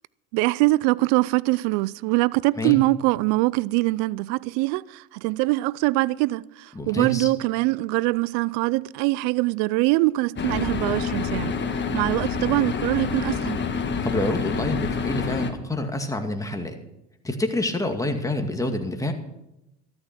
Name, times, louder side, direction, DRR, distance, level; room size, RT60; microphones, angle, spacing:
voice 1, 0.3-11.5 11.9-13.6, right 21 dB, 65° right, 0.5 m, -23 dB
voice 2, 6.8-7.3 14.0-16.7 17.2-19.1, left 1 dB, 10° left, 2.2 m, -27 dB
sound 1, 10.4-15.5, left 5 dB, 35° left, 2.0 m, -27 dB
13.5 x 12.5 x 6.0 m
hypercardioid pair, 80°, 33 cm